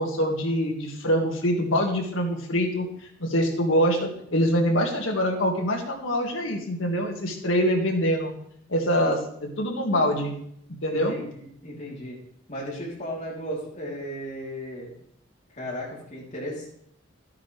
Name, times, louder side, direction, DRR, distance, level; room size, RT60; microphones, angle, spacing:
voice 1, 0.0-2.9 3.2-8.3 8.7-10.3 10.8-11.2, equal, 85° left, 2 dB, 1.9 m, -24 dB
voice 2, 10.9-12.2 12.5-14.9 15.5-16.7, equal, 35° left, -4 dB, 3.4 m, -35 dB
13.0 x 9.5 x 3.3 m, 0.69 s
head